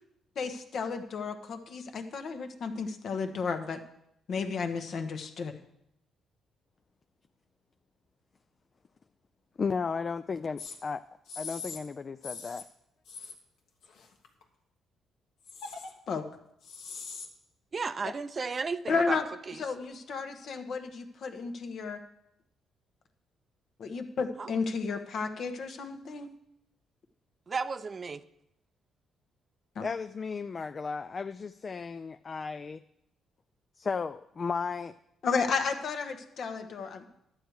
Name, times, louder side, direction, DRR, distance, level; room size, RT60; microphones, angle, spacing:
voice 1, 0.4-3.8 4.3-5.5 16.1-16.3 18.9-19.3 19.6-22.0 23.8-26.3 29.8-29.9 35.2-37.1, left 5 dB, 60° left, 7 dB, 1.0 m, -33 dB
voice 2, 9.6-11.0 11.4-12.6 29.8-32.8 33.8-34.9, left 5 dB, 40° left, 11 dB, 0.3 m, -34 dB
sound 1, 10.6-10.8 11.3-11.8 12.2-12.6 13.1-13.3 13.8-14.4 15.4-15.9 16.6-17.3, left 4 dB, 80° left, 1.3 m, -42 dB
voice 3, 17.7-19.2 19.5-19.6 24.4-24.5 27.5-28.2, right 4 dB, 35° right, 12 dB, 0.5 m, -34 dB
11.5 x 8.0 x 4.7 m, 0.78 s
cardioid pair, 90°, 0 cm